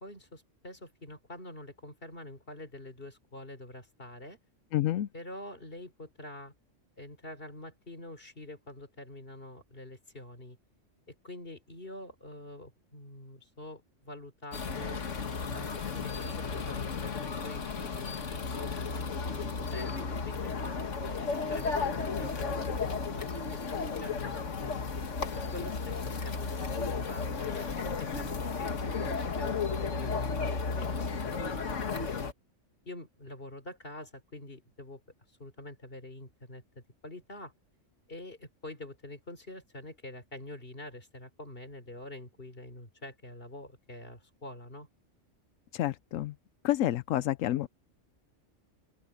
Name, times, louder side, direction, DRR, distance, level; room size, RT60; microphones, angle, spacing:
voice 1, 0.0-4.4 5.1-6.5 7.0-10.6 11.1-15.0 15.5-20.5 21.0-24.9 25.4-32.2 32.8-35.0 35.4-37.5 38.1-44.9, left 1 dB, 45° left, 4.0 m, -46 dB
voice 2, 4.7-5.1 45.7-46.3 46.6-47.7, left 13 dB, 90° left, 1.0 m, -29 dB
sound 1, 14.5-32.3, left 5 dB, 70° left, 1.9 m, -34 dB
open air
omnidirectional pair, 1.3 m